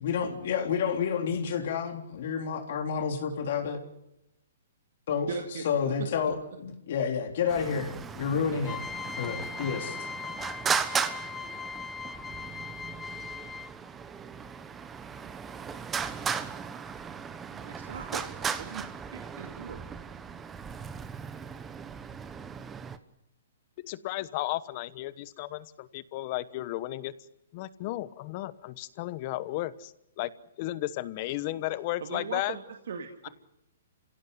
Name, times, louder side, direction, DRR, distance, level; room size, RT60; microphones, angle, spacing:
voice 1, 0.0-3.8 5.1-5.3 5.6-8.8 9.1-10.0, left 6 dB, 60° left, 4 dB, 3.8 m, -30 dB
voice 2, 5.3-6.2 17.5-19.8 32.0-33.3, right 6 dB, 70° right, 4 dB, 2.4 m, -39 dB
Traffic noise roadway noise, 7.5-23.0, right 6 dB, 15° right, 1.1 m, -36 dB
sound 1, 8.6-13.9, left 6 dB, 10° left, 0.9 m, -39 dB
voice 3, 23.8-27.1 27.5-30.3 30.6-32.6, left 16 dB, 40° left, 16 dB, 1.1 m, -34 dB
28.5 x 16.5 x 8.1 m, 0.87 s
hypercardioid pair, 145°, 0 cm